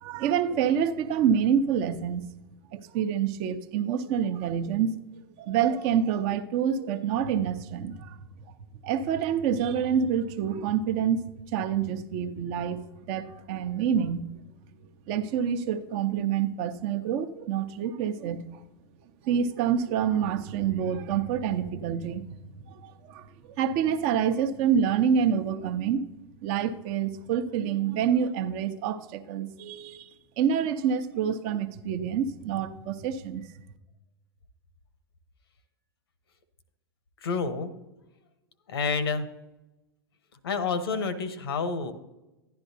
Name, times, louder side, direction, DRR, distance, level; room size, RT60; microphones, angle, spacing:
voice 1, 0.0-2.2 2.7-4.9 5.4-8.2 8.8-14.3 15.1-18.6 19.2-22.2 22.7-23.3 23.6-26.1 26.4-30.1 30.4-33.5, right 8 dB, 50° right, 10 dB, 0.8 m, -27 dB
voice 2, 37.2-37.7 38.7-39.3 40.4-41.9, left 4 dB, 75° left, 12 dB, 1.1 m, -28 dB
11.5 x 10.5 x 2.7 m, 0.99 s
hypercardioid pair, 100°, 13 cm